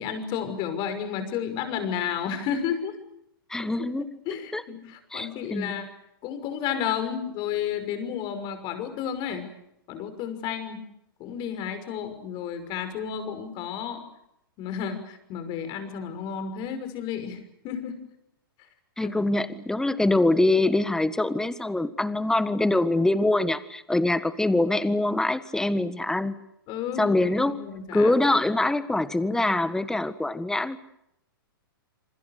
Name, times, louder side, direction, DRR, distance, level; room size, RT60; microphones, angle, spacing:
voice 1, 0.0-3.0 3.6-3.9 4.3-5.9 6.2-9.5 9.9-10.8 11.2-14.0 14.6-18.0 19.0-19.2 26.7-28.1, left 8 dB, 40° left, 10 dB, 6.0 m, -32 dB
voice 2, 3.5-4.1 4.5-4.6 5.1-5.7 19.0-26.4 27.0-27.6 27.9-30.8, left 2 dB, 5° left, 14 dB, 1.6 m, -24 dB
27.5 x 25.5 x 6.6 m, 0.80 s
hypercardioid pair, 115°, 12 cm